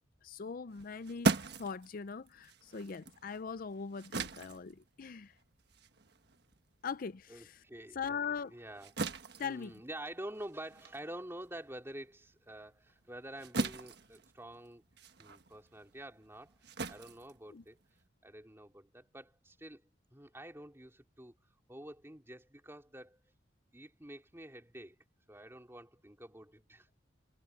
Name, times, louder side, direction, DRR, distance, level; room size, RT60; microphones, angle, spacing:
voice 1, 0.2-5.3 6.8-7.6 7.9-8.5 9.4-9.8 17.5-17.6, left 6 dB, 45° left, 0.5 m, -41 dB
sound 1, 0.7-7.5 7.9-18.1, right 3 dB, 60° right, 1.4 m, -40 dB
voice 2, 7.3-8.2 8.5-8.9 9.4-14.8 15.2-17.8 18.2-19.8 20.1-21.4 21.7-23.2 23.7-25.0 25.3-27.0, right 1 dB, 15° right, 3.0 m, -48 dB
head